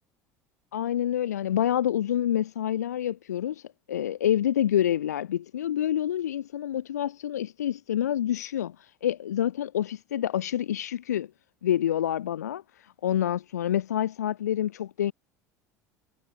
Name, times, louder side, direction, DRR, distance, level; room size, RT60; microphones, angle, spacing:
voice 1, 0.7-11.3 11.6-15.1, left 11 dB, 75° left, 0.4 m, -27 dB
figure-of-eight pair, 70°, 9 cm